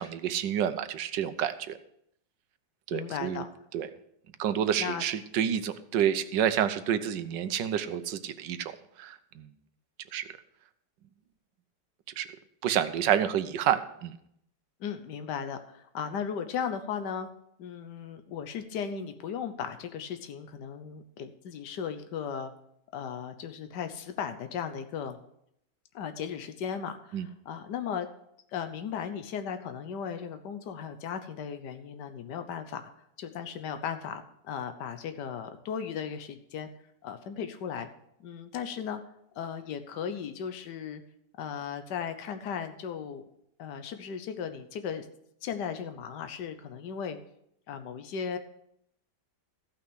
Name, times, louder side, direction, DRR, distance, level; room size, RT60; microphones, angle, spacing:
voice 1, 0.0-1.8 2.9-3.4 3.7-3.9 4.4-8.7 9.0-9.5 10.1-10.2 12.2-12.3 12.6-14.1 27.1-27.3, right 9 dB, 85° right, 11 dB, 1.4 m, -29 dB
voice 2, 2.9-3.5 4.8-5.0 14.8-17.3 17.6-22.5 22.9-25.2 25.9-28.1 28.5-32.9 33.2-36.7 37.0-37.9 38.2-39.0 39.3-41.0 41.4-43.2 43.6-45.1 45.4-47.2 47.7-48.4, left 7 dB, 75° left, 9 dB, 1.5 m, -36 dB
14.5 x 5.9 x 6.3 m, 0.73 s
omnidirectional pair, 1.9 m